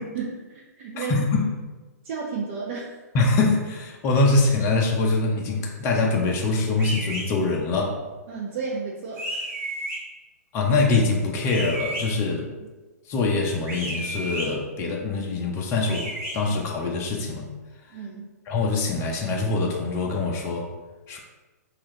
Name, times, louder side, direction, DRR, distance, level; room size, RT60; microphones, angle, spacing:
voice 1, 0.1-1.2 2.0-3.0 8.3-9.5 12.6-12.7 17.9-18.3, right 5 dB, 45° right, -3 dB, 0.6 m, -33 dB
voice 2, 1.0-1.5 3.1-8.0 10.5-12.5 13.1-17.5 18.5-20.7 21.1-21.2, left 3 dB, 30° left, 0 dB, 0.6 m, -24 dB
sound 1, 6.8-7.2 9.2-10.0 11.5-12.0 13.6-14.5 15.9-16.3, right 1 dB, 20° right, 1.3 m, -32 dB
4.3 x 2.5 x 3.7 m, 1.2 s
hypercardioid pair, 130°, 9 cm